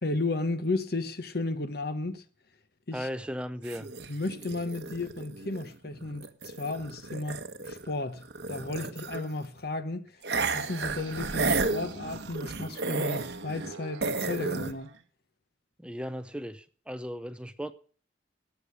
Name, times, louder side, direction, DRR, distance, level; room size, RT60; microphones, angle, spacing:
voice 1, 0.0-2.2 2.9-3.1 4.1-10.1 10.5-14.9, left 2 dB, 50° left, 1.0 m, -34 dB
voice 2, 2.9-3.9 15.8-17.7, equal, 5° right, 0.5 m, -36 dB
sound 1, 3.6-7.9 8.2-9.4 10.2-13.7 14.0-14.7, right 3 dB, 60° right, 1.0 m, -33 dB
sound 2, 10.2-15.0, right 3 dB, 90° right, 1.2 m, -45 dB
18.0 x 6.6 x 6.8 m
head